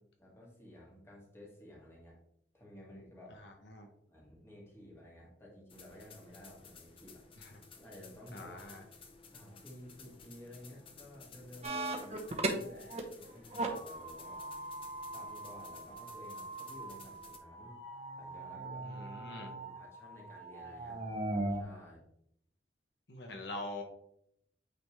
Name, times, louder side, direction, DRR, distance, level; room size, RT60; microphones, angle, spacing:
voice 1, 0.2-2.2 2.5-3.4 4.1-7.2 7.8-8.5 9.3-14.4 15.1-17.8 18.2-21.0 21.5-22.1, left 1 dB, 15° left, -3 dB, 1.7 m, -53 dB
voice 2, 3.4-3.9 7.4-7.5 8.3-8.8 18.8-19.5 23.1-23.8, left 2 dB, 75° left, 3 dB, 1.0 m, -44 dB
sound 1, 5.7-17.4, left 5 dB, 30° left, 0.7 m, -56 dB
sound 2, 11.6-13.0 13.3-21.6, right 2 dB, 35° right, 0.9 m, -39 dB
8.8 x 3.4 x 3.2 m, 0.72 s
head